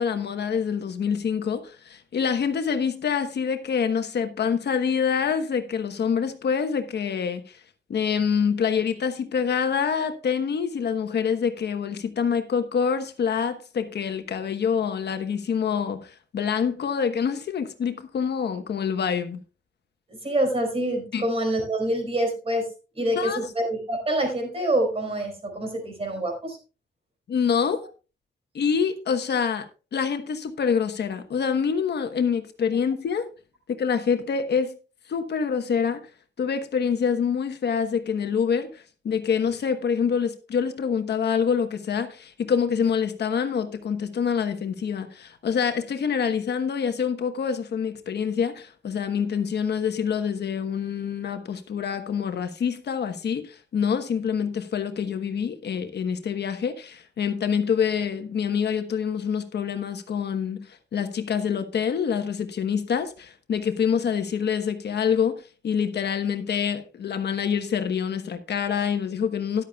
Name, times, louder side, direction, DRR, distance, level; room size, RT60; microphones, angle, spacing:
voice 1, 0.0-7.6 7.9-19.4 21.1-21.2 23.1-23.4 27.3-27.8 28.5-33.3 33.7-34.8 35.1-36.0 36.4-60.7 60.9-69.6, left 7 dB, 65° left, 1.2 m, -26 dB
voice 2, 20.2-22.7 23.0-26.6, right 1 dB, 30° right, 4.4 m, -26 dB
13.5 x 11.5 x 2.3 m
wide cardioid pair, 175°, 18 cm